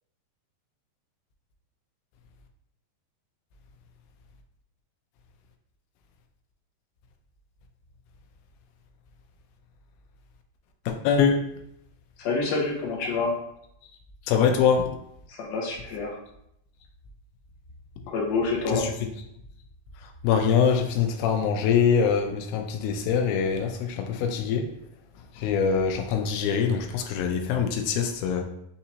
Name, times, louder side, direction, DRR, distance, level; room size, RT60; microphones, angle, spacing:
voice 1, 10.9-11.4 14.3-14.9 18.7-19.1 20.2-24.7 25.4-28.4, left 6 dB, 85° left, 4 dB, 2.4 m, -24 dB
voice 2, 12.2-13.3 15.4-16.2 18.1-18.8, left 3 dB, 65° left, -3 dB, 1.8 m, -27 dB
5.9 x 2.8 x 2.7 m, 0.75 s
omnidirectional pair, 4.2 m